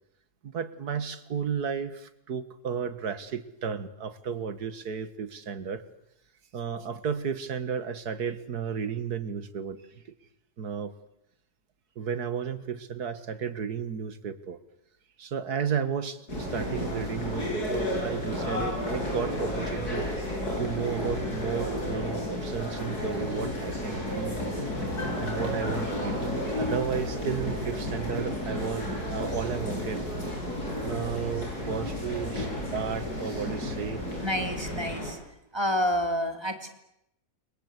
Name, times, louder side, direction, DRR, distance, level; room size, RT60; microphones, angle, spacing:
voice 1, 0.4-5.8 6.5-9.8 10.6-10.9 12.0-14.6 15.2-20.1 20.6-24.4 24.8-26.2 26.6-30.1 30.8-34.0, right 7 dB, 90° right, 12 dB, 2.2 m, -33 dB
sound 1, 16.3-35.1, left 1 dB, 90° left, 8.1 m, -32 dB
voice 2, 34.2-35.2 35.5-36.7, equal, 15° right, 6 dB, 3.0 m, -28 dB
29.5 x 23.0 x 8.3 m, 0.82 s
omnidirectional pair, 1.6 m